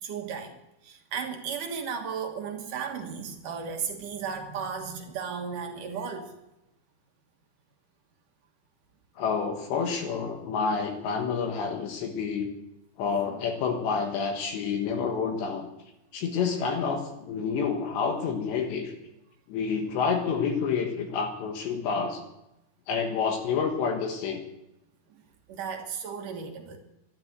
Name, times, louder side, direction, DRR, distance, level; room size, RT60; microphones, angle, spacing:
voice 1, 0.0-6.3 25.1-25.2 25.5-26.8, right 6 dB, 65° right, 4 dB, 2.3 m, -35 dB
voice 2, 9.2-12.5 13.0-15.7 16.1-18.9 19.5-22.2 22.9-24.4, left 5 dB, 75° left, 3 dB, 3.6 m, -28 dB
12.5 x 12.5 x 7.8 m, 0.90 s
omnidirectional pair, 5.3 m